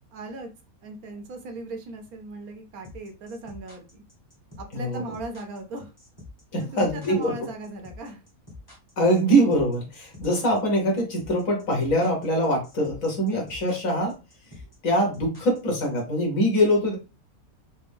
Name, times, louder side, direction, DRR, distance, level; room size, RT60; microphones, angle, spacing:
voice 1, 0.1-0.5 0.8-4.0 4.6-5.9 6.6-8.2, right 2 dB, 75° right, 5 dB, 1.2 m, -38 dB
sound 1, 2.8-16.0, left 2 dB, 15° left, 1.0 m, -46 dB
voice 2, 6.5-7.3 9.0-14.2 14.8-17.0, equal, 60° left, 0 dB, 1.6 m, -23 dB
4.2 x 2.1 x 3.4 m, 0.29 s
omnidirectional pair, 1.6 m